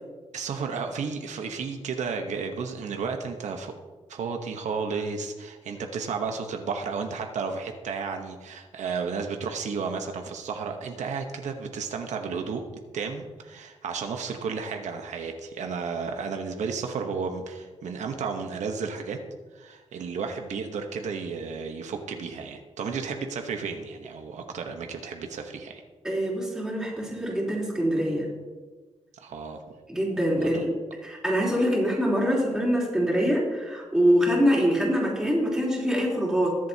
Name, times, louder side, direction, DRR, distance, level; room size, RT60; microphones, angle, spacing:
voice 1, 0.3-3.7 4.1-12.6 12.9-19.2 19.5-25.8 29.2-29.6 30.4-30.6, right 5 dB, 80° right, 4 dB, 1.0 m, -33 dB
voice 2, 26.0-28.3 29.9-30.7 31.0-36.6, equal, 5° right, -5 dB, 3.4 m, -24 dB
22.0 x 7.6 x 2.8 m, 1.4 s
wide cardioid pair, 140°, 12 cm